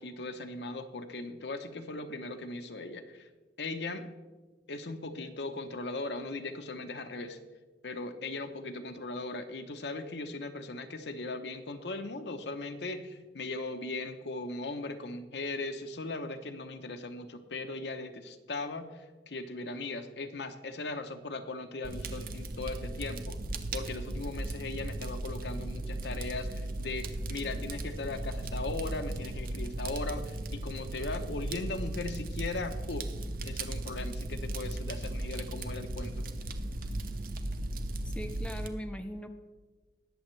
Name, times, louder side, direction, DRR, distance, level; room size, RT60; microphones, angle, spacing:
voice 1, 0.0-3.3 3.6-4.1 4.7-7.4 7.8-23.4 23.7-33.1 33.4-36.3, left 2 dB, 65° left, 7 dB, 0.8 m, -38 dB
Fire, 21.8-38.7, right 1 dB, 50° right, 0.7 m, -36 dB
voice 2, 38.0-39.3, equal, 5° left, 5 dB, 0.5 m, -40 dB
19.5 x 7.1 x 3.2 m, 1.3 s
head